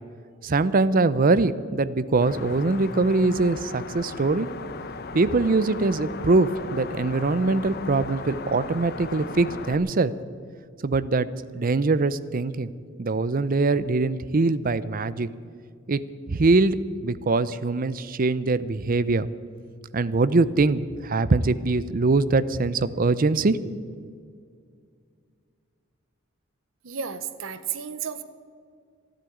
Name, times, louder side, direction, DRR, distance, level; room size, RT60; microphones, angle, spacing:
voice 1, 0.4-4.5 5.1-10.1 10.8-11.3 11.5-12.7 13.0-15.3 15.9-16.0 16.3-16.8 17.0-19.3 19.9-23.6, right 3 dB, 45° right, 16 dB, 0.6 m, -22 dB
sound 1, 2.2-9.8, left 4 dB, 55° left, 0.8 m, -37 dB
voice 2, 26.8-28.2, right 7 dB, 80° right, 11 dB, 0.8 m, -32 dB
13.0 x 11.5 x 9.2 m, 2.2 s
head